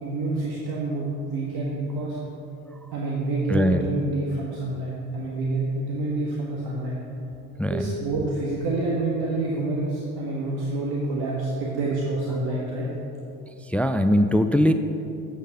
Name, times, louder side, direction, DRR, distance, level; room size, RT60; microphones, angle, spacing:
voice 1, 0.0-2.2 2.9-7.0 7.7-12.9, right 2 dB, 65° right, -4 dB, 1.5 m, -27 dB
voice 2, 3.5-3.8 7.6-7.8 13.7-14.7, left 1 dB, 5° left, 9 dB, 0.3 m, -20 dB
8.2 x 6.4 x 6.5 m, 2.9 s
hypercardioid pair, 60°, 41 cm